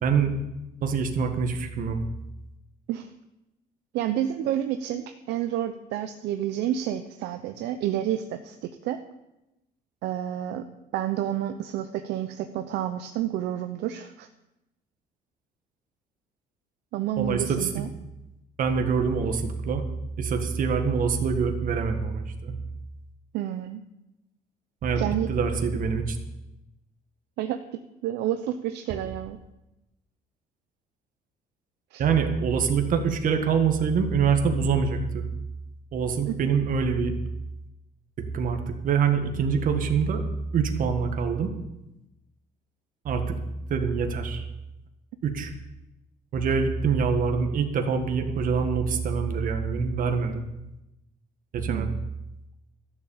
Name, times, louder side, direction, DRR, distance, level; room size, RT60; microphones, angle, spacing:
voice 1, 0.0-0.3 0.8-2.0 17.2-17.7 18.6-19.8 20.2-22.5 24.8-25.0 25.3-26.2 32.0-35.2 35.9-37.1 38.3-40.2 40.5-41.5 43.0-43.3 43.7-44.4 45.2-45.5 46.3-50.4 51.5-51.9, right 6 dB, 55° right, 5 dB, 1.7 m, -25 dB
voice 2, 3.9-9.0 10.0-10.7 10.9-14.3 16.9-17.9 23.3-23.8 25.0-25.3 27.4-29.4 31.9-32.0 36.3-36.5 51.7-52.0, right 11 dB, 80° right, 8 dB, 0.7 m, -30 dB
13.0 x 7.4 x 8.8 m, 0.94 s
cardioid pair, 110°, 17 cm